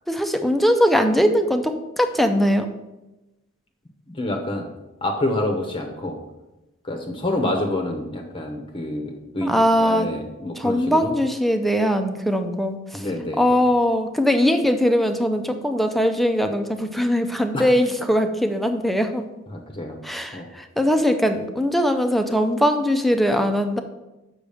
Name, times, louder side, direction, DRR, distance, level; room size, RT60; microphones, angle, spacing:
voice 1, 0.1-2.7 9.4-10.1 10.5-13.1 13.4-19.2 20.0-23.8, equal, ahead, 6 dB, 0.5 m, -21 dB
voice 2, 4.1-4.7 5.0-6.2 6.8-9.5 9.8-11.1 12.9-13.6 17.5-17.7 19.5-20.0 20.3-20.5, left 1 dB, 25° left, 3 dB, 0.8 m, -27 dB
6.9 x 6.1 x 5.0 m, 1.0 s
head